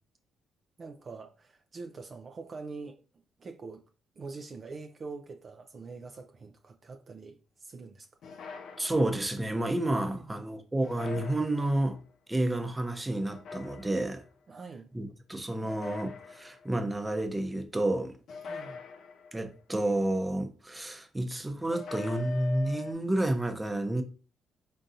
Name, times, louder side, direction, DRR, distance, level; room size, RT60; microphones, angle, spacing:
voice 1, 0.8-3.0 3.4-3.8 4.2-8.1 10.1-10.5 14.5-14.9 18.4-18.8, right 4 dB, 40° right, 0.5 m, -44 dB
sound 1, 8.2-9.4 10.8-12.0 13.3-14.3 15.6-16.8 18.3-19.6 21.7-22.9, left 4 dB, 70° left, 0.6 m, -43 dB
voice 2, 8.8-12.0 12.3-14.2 14.9-18.1 19.3-24.0, right 1 dB, 15° right, 0.7 m, -30 dB
3.8 x 3.7 x 2.7 m
cardioid pair, 90°, 0 cm